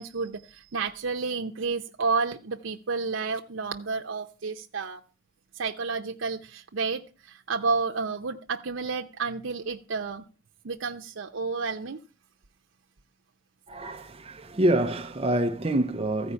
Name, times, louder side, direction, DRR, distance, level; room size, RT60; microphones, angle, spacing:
voice 1, 0.0-5.0 5.5-10.2 10.6-12.0, right 4 dB, 85° right, 0.7 m, -31 dB
voice 2, 13.7-16.3, right 1 dB, 30° right, 0.7 m, -26 dB
14.5 x 5.1 x 8.2 m
head